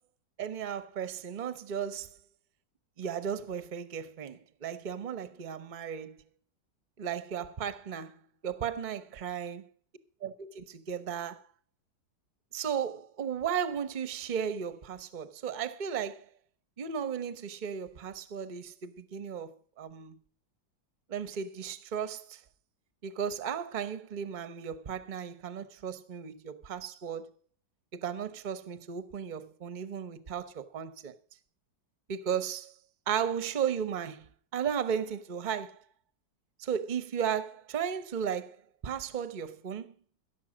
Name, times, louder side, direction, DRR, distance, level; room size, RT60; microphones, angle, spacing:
voice 1, 0.4-2.1 3.0-6.2 7.0-8.1 8.4-9.6 10.2-11.4 12.5-16.3 16.8-20.2 21.1-22.4 23.0-27.3 27.9-31.1 32.1-32.7 33.1-35.8 36.6-38.5 38.8-39.9, right 8 dB, 40° right, 0.7 m, -35 dB
16.0 x 7.2 x 6.3 m
omnidirectional pair, 2.1 m